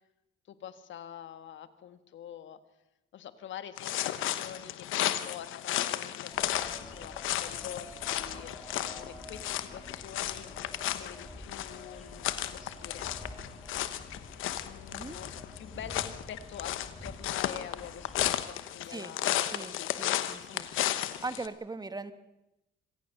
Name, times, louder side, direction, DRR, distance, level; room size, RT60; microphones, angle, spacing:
voice 1, 0.5-2.6 3.1-10.5 11.0-13.1 14.6-21.0, left 9 dB, 70° left, 11 dB, 1.5 m, -46 dB
sound 1, 3.8-21.5, left 13 dB, 90° left, 1.1 m, -34 dB
sound 2, 6.3-18.4, equal, ahead, 3.6 m, -48 dB
voice 2, 19.5-20.7 21.2-22.1, right 3 dB, 20° right, 11 dB, 1.4 m, -40 dB
26.0 x 16.5 x 6.7 m, 0.91 s
cardioid pair, 90°, 20 cm